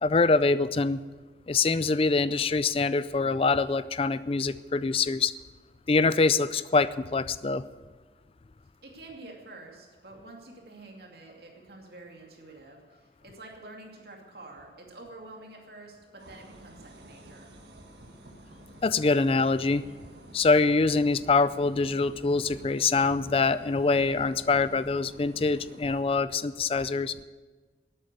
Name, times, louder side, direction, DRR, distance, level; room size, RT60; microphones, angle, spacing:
voice 1, 0.0-1.0 1.5-5.3 5.9-7.6 18.8-19.8 20.3-27.2, left 4 dB, 30° left, 16 dB, 0.4 m, -24 dB
voice 2, 8.8-17.5, right 2 dB, 60° right, 0 dB, 2.5 m, -48 dB
sound 1, 16.2-26.0, right 1 dB, 75° right, 1.6 m, -51 dB
12.5 x 9.0 x 8.3 m, 1.4 s
head